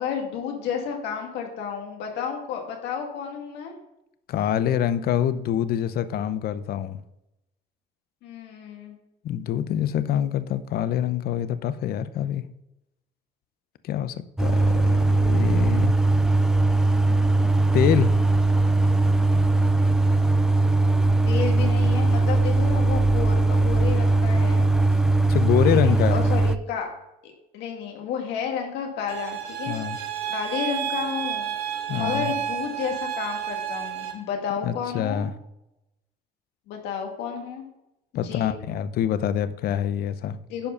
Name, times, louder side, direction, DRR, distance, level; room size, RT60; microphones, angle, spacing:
voice 1, 0.0-3.7 8.2-9.0 21.2-24.7 25.6-26.9 27.2-29.8 30.3-31.5 31.9-35.2 36.7-37.7 38.2-38.6 40.5-40.7, left 7 dB, 90° left, 2 dB, 1.9 m, -31 dB
voice 2, 4.3-7.0 9.2-12.4 13.8-16.0 17.7-18.1 25.3-26.2 29.7-30.0 31.9-32.3 34.6-35.3 38.1-40.4, left 10 dB, 65° left, 13 dB, 0.6 m, -25 dB
sound 1, 14.4-26.6, right 2 dB, 5° right, 0.3 m, -20 dB
sound 2, 29.1-34.1, right 10 dB, 70° right, 1.6 m, -31 dB
10.5 x 4.7 x 5.5 m, 0.88 s
cardioid pair, 110°, 17 cm